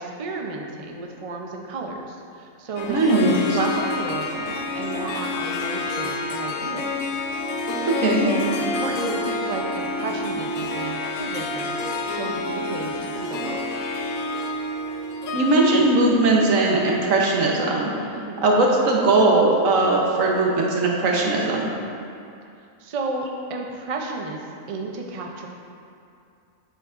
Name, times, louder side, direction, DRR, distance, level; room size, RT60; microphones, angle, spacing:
voice 1, 0.0-6.9 8.2-11.8 12.0-13.6 18.1-18.4 22.8-25.5, right 3 dB, 50° right, 1 dB, 0.4 m, -32 dB
Harp, 2.8-17.2, left 2 dB, 80° left, 1.0 m, -29 dB
voice 2, 2.9-3.4 7.9-8.3 15.3-17.9 18.4-21.7, right 2 dB, 70° right, -1 dB, 1.3 m, -19 dB
7.8 x 7.4 x 2.5 m, 2.5 s
omnidirectional pair, 1.4 m